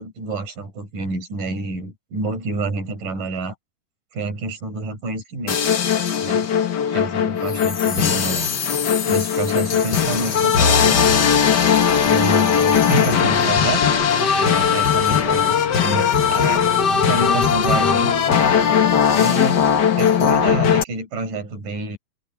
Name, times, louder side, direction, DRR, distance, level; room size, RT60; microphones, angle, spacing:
voice 1, 0.0-3.5 4.1-5.6 6.2-6.5 6.9-8.5 9.1-11.3 12.1-14.0 14.4-18.1 19.1-19.7 20.0-22.0, right 3 dB, 65° right, 7.2 m, -28 dB
sound 1, 5.5-20.8, left 7 dB, 85° left, 0.9 m, -18 dB
open air
omnidirectional pair, 4.1 m